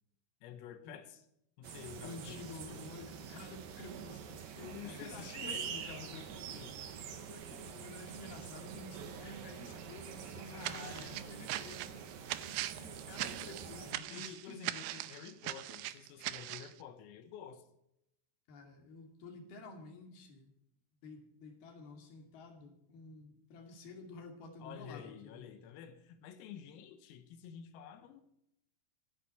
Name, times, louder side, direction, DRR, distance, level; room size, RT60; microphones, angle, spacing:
voice 1, 0.4-1.2 1.6-2.8 4.6-6.8 10.5-11.5 13.6-17.6 24.6-28.2, left 8 dB, 85° left, 9 dB, 4.1 m, -50 dB
sound 1, 1.6-13.9, right 7 dB, 65° right, 2.4 m, -46 dB
voice 2, 1.9-4.6 4.8-5.9 7.1-12.1 12.4-14.6 18.5-20.5 21.0-25.5, left 3 dB, 55° left, 3 dB, 3.9 m, -51 dB
sound 2, 10.6-16.7, right 15 dB, 80° right, 2.7 m, -41 dB
25.5 x 11.0 x 4.5 m, 0.79 s
omnidirectional pair, 5.9 m